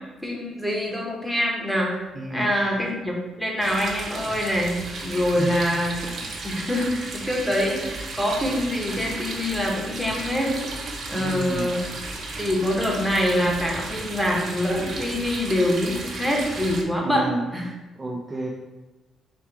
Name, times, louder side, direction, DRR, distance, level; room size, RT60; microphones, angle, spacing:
voice 1, 0.2-2.0 2.3-4.7 5.0-6.1 6.4-7.8 8.1-10.6 11.1-11.8 12.4-17.2 17.5-17.6, left 1 dB, 5° left, -1 dB, 1.1 m, -25 dB
voice 2, 2.1-2.5 5.4-5.8 11.1-11.8 17.0-17.5 18.0-18.5, right 2 dB, 25° right, -1 dB, 0.4 m, -31 dB
sound 1, 3.6-16.8, right 3 dB, 60° right, 0.8 m, -34 dB
4.4 x 2.4 x 4.7 m, 1.1 s
cardioid pair, 90°, 0 cm